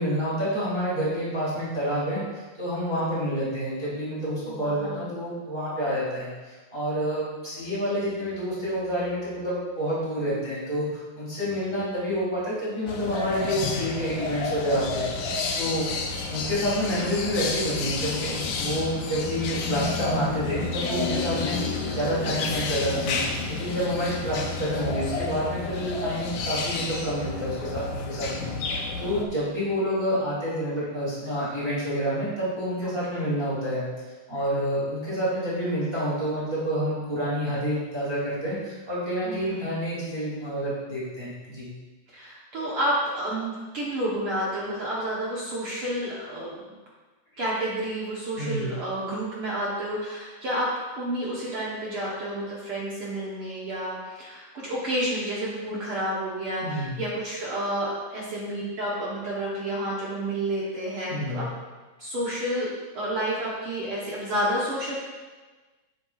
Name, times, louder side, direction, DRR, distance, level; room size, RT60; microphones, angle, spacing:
voice 1, 0.0-2.2 2.6-15.8 16.3-33.8 34.3-41.7 48.4-48.7 56.6-56.9 61.1-61.4, equal, 15° right, -10 dB, 2.6 m, -28 dB
voice 2, 4.5-5.1 32.8-33.3 39.2-39.8 42.1-46.8 47.4-50.7 51.0-61.5 62.0-65.0, right 1 dB, 65° right, -6 dB, 1.4 m, -30 dB
sound 1, 12.9-29.3, left 4 dB, 75° left, 2.2 m, -30 dB
10.5 x 7.8 x 2.4 m, 1.3 s
omnidirectional pair, 4.0 m